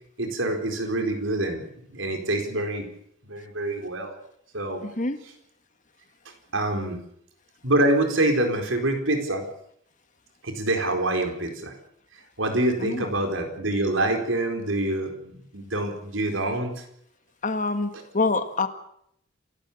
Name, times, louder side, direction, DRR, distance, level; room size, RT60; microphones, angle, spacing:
voice 1, 0.2-2.9 3.3-4.1 4.5-4.8 6.5-7.0 7.6-9.5 10.4-11.7 12.4-16.7, right 1 dB, 75° right, 4 dB, 4.5 m, -26 dB
voice 2, 4.8-5.2 12.8-13.1 17.4-18.7, left 3 dB, 40° left, 9 dB, 1.7 m, -26 dB
27.5 x 13.0 x 8.7 m, 0.72 s
head